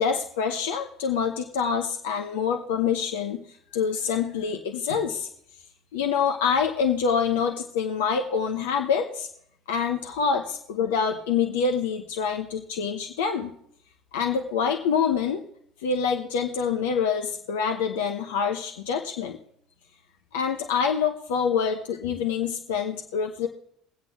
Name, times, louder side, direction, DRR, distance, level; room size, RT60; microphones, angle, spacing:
voice 1, 0.0-3.4 3.7-5.3 5.9-9.3 9.7-13.5 14.1-15.4 15.8-19.4 20.3-23.5, left 6 dB, 70° left, 4 dB, 1.0 m, -26 dB
22.0 x 8.1 x 3.5 m, 0.68 s
figure-of-eight pair, 55°, 0 cm